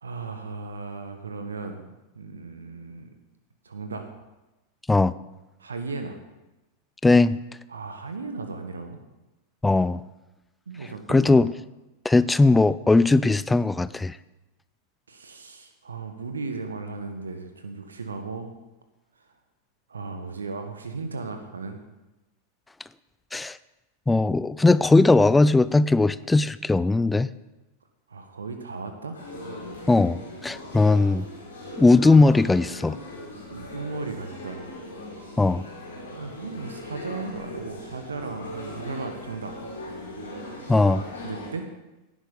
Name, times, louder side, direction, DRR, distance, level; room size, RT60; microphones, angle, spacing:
voice 1, 0.0-3.1 3.6-4.0 5.6-6.2 7.7-9.0 10.7-11.5 15.1-18.5 19.2-19.3 19.9-21.8 28.1-29.2 30.9-31.3 33.5-34.6 36.1-39.6 40.7-41.6, right 4 dB, 70° right, 7 dB, 1.3 m, -36 dB
voice 2, 7.0-7.4 9.6-10.0 11.1-11.5 12.0-14.2 23.3-23.6 24.1-27.3 29.9-31.3 31.8-33.0 35.4-35.7 40.7-41.0, left 3 dB, 10° left, 17 dB, 0.4 m, -19 dB
sound 1, 29.1-41.5, left 1 dB, 70° left, 4.4 m, -39 dB
17.0 x 11.5 x 4.0 m, 1.0 s
figure-of-eight pair, 90°, 0 cm